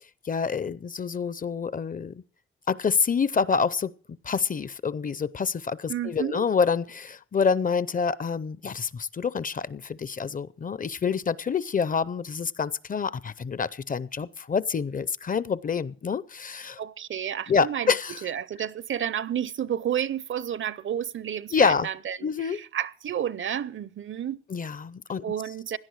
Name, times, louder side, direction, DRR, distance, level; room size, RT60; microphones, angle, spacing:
voice 1, 0.2-2.2 2.7-3.9 4.2-16.8 17.5-18.2 21.5-21.9 22.2-22.6 24.5-25.2, left 5 dB, 40° left, 0.6 m, -27 dB
voice 2, 5.9-6.5 16.8-17.9 18.2-24.4 25.2-25.8, right 9 dB, 65° right, 0.6 m, -31 dB
17.0 x 11.0 x 4.7 m
wide cardioid pair, 110°, 21 cm